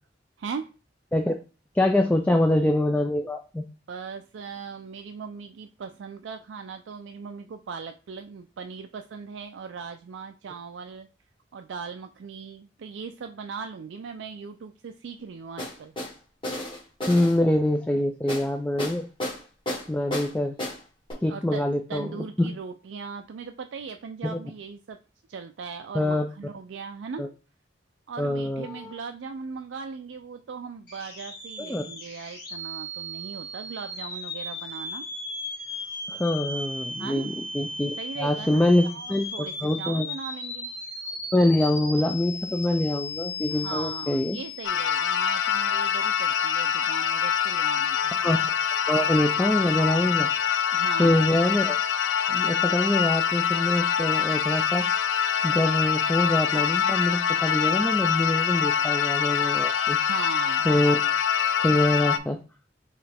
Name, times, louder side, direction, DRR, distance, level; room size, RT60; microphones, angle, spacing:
voice 1, 0.4-0.7 3.9-11.1 11.5-15.9 21.3-25.0 25.3-27.3 28.1-35.0 37.0-37.3 38.0-40.7 43.5-48.2 50.7-51.2 60.0-60.7, right 5 dB, 90° right, 6 dB, 0.4 m, -39 dB
voice 2, 1.7-3.6 17.1-19.1 19.9-20.6 21.2-22.5 24.2-24.4 25.9-26.3 27.2-27.3 28.2-28.9 31.6-31.8 36.1-39.3 39.6-40.1 41.3-44.4 48.2-48.4 48.9-50.3 51.0-51.8 52.3-54.9 55.4-60.0 60.7-61.0 61.6-62.4, left 1 dB, 10° left, 4 dB, 0.3 m, -24 dB
sound 1, 15.6-16.1 16.4-17.4 18.3-18.5 18.8-19.4 19.7-20.3 20.6-20.8 21.1-21.2, left 1 dB, 30° left, 1.9 m, -32 dB
sound 2, 30.9-47.6, left 2 dB, 60° left, 2.4 m, -37 dB
sound 3, 44.6-62.2, left 8 dB, 80° left, 0.4 m, -25 dB
4.7 x 3.1 x 3.4 m, 0.34 s
head